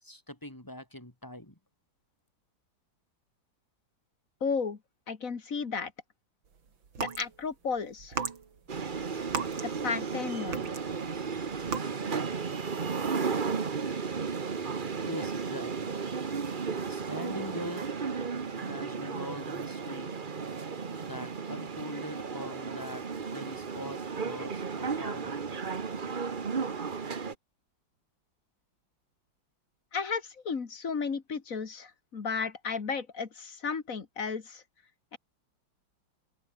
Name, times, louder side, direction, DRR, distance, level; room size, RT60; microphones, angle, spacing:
voice 1, 0.0-1.6 15.0-16.0 16.9-17.9 18.6-20.2 21.0-25.3, left 1 dB, 10° left, 4.9 m, -42 dB
voice 2, 4.4-4.8 5.1-5.9 7.0-8.2 9.6-10.6 29.9-34.6 35.1-35.2, left 5 dB, 45° left, 2.1 m, -34 dB
sound 1, 6.9-7.3 8.0-10.1 10.5-11.1 11.6-11.8, right 6 dB, 80° right, 3.2 m, -35 dB
sound 2, 8.7-27.3, right 5 dB, 30° right, 1.0 m, -34 dB
open air
omnidirectional pair, 2.1 m